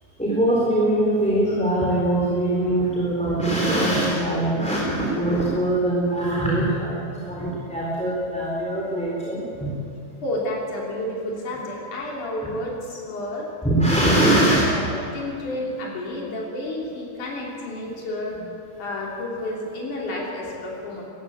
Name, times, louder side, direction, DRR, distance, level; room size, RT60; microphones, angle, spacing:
voice 1, 0.2-9.7 13.6-14.7, right 1 dB, ahead, -5 dB, 3.6 m, -22 dB
voice 2, 10.2-13.5 14.1-14.2 14.6-18.4 18.8-21.0, left 1 dB, 90° left, -3 dB, 4.7 m, -31 dB
20.5 x 15.5 x 9.2 m, 2.5 s
omnidirectional pair, 3.4 m